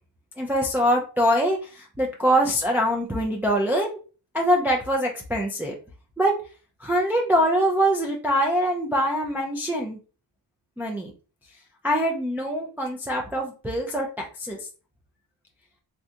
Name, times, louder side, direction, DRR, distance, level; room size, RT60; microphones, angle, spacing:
voice 1, 0.4-3.9 4.3-5.7 6.2-6.3 6.8-10.0 10.8-11.1 11.8-14.1 14.4-14.6, equal, 5° right, -1 dB, 0.4 m, -23 dB
3.3 x 2.7 x 2.4 m, 0.36 s
wide cardioid pair, 120°, 44 cm